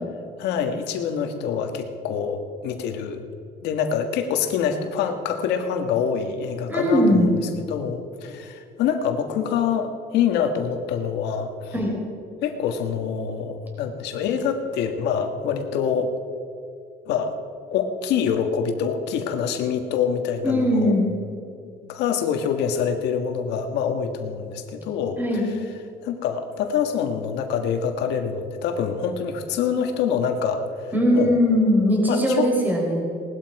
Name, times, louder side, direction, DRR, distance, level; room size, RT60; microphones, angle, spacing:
voice 1, 0.4-3.2 3.6-7.3 7.6-11.7 12.4-16.1 17.1-17.3 17.7-21.0 21.9-25.2 26.0-30.6 31.1-31.4 32.1-32.5, left 7 dB, 85° left, 6 dB, 1.6 m, -25 dB
voice 2, 6.7-7.3 11.7-11.9 20.4-21.1 25.2-25.5 30.9-33.0, equal, 10° right, -2 dB, 4.5 m, -20 dB
19.0 x 12.5 x 4.8 m, 2.5 s
cardioid pair, 110°, 17 cm